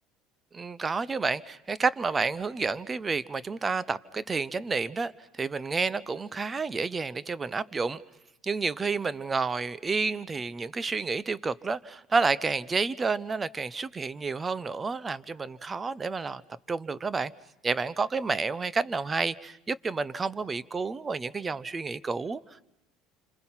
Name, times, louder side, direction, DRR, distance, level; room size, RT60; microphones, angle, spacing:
voice 1, 0.5-8.0 8.4-16.4 16.7-17.3 17.6-22.7, right 4 dB, 25° right, 19 dB, 0.8 m, -30 dB
28.5 x 26.5 x 5.8 m, 0.85 s
supercardioid pair, 100°, 0 cm